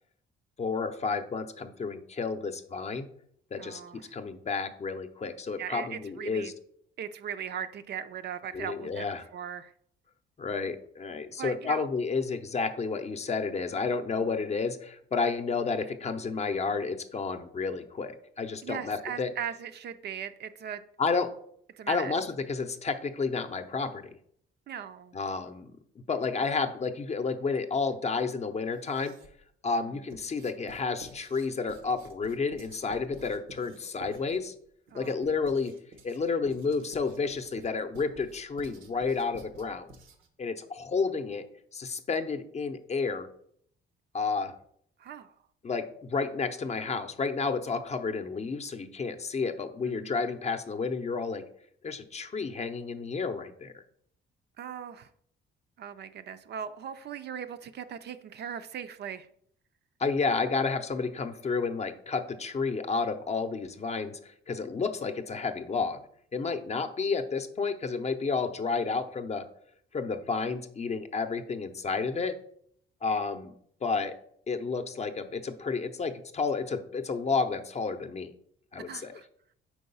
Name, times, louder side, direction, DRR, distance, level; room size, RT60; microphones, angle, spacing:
voice 1, 0.6-3.1 3.5-6.5 8.5-9.2 10.4-19.3 21.0-21.3 21.9-24.2 25.1-25.7 26.1-29.1 29.6-34.5 34.9-35.7 36.0-39.9 40.4-41.4 41.7-43.3 44.1-44.5 45.6-51.4 51.8-53.7 60.0-66.0 66.3-69.5 69.9-72.4 73.0-73.5 73.8-74.1 74.5-78.3 78.7-79.2, left 4 dB, 35° left, 8 dB, 0.6 m, -31 dB
voice 2, 3.6-4.2 5.6-6.5 7.0-9.1 9.3-9.7 11.4-11.9 14.2-14.5 18.6-20.8 21.7-22.2 24.7-25.1 29.7-30.1 34.9-35.2 45.0-45.4 49.9-50.2 54.6-55.1 55.8-59.3 78.8-79.3, right 8 dB, 55° right, 11 dB, 0.5 m, -39 dB
Writing, 28.7-29.5 30.1-40.4, right 2 dB, 90° right, 0.9 m, -51 dB
4.7 x 3.8 x 5.4 m, 0.66 s
cardioid pair, 90°, 20 cm